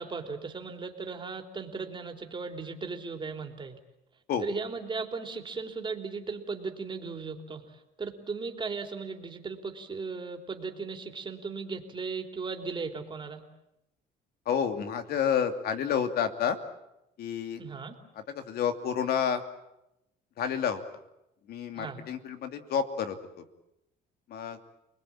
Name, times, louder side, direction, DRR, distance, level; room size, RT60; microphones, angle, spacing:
voice 1, 0.0-3.8 4.4-7.6 8.0-13.4 17.6-18.0 21.7-22.0, right 4 dB, 30° right, 4 dB, 3.6 m, -37 dB
voice 2, 14.5-16.6 17.2-17.6 18.3-19.4 20.4-20.8 21.5-23.2 24.3-24.6, left 8 dB, 65° left, 7 dB, 2.7 m, -29 dB
29.5 x 21.0 x 8.9 m, 0.87 s
cardioid pair, 110°, 17 cm